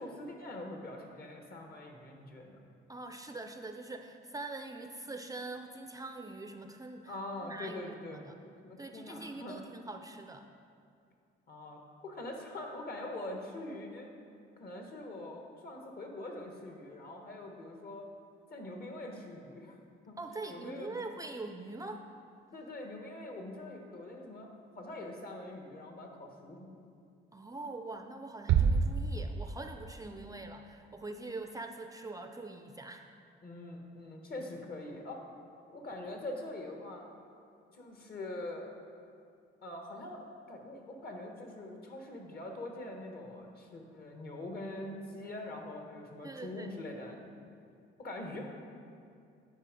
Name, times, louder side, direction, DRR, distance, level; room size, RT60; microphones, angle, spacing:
voice 1, 0.0-2.6 7.1-8.2 8.6-9.6 11.5-14.1 14.6-18.1 18.5-19.7 20.1-20.2 20.5-21.1 22.5-24.5 24.8-26.8 33.4-35.2 35.7-37.0 37.7-38.7 39.6-47.4 48.0-48.5, left 1 dB, 50° left, 2 dB, 1.4 m, -43 dB
voice 2, 2.9-7.1 7.4-8.4 8.8-10.5 20.2-22.0 27.3-33.0 46.2-46.7, right 2 dB, 20° right, 5 dB, 0.4 m, -43 dB
sound 1, 28.5-30.1, right 6 dB, 75° right, 0.5 m, -28 dB
9.7 x 4.5 x 5.0 m, 2.4 s
cardioid pair, 90°, 20 cm